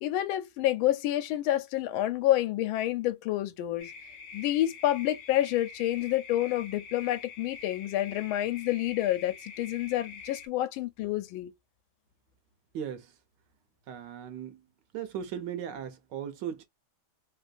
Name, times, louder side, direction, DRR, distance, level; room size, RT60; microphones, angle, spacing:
voice 1, 0.0-3.9 4.3-11.5, left 13 dB, 90° left, 1.4 m, -28 dB
sound 1, 3.8-10.5, left 5 dB, 70° left, 1.2 m, -46 dB
voice 2, 12.7-13.1 13.9-14.6 14.9-16.6, right 9 dB, 70° right, 1.2 m, -37 dB
3.4 x 2.5 x 2.3 m
omnidirectional pair, 2.2 m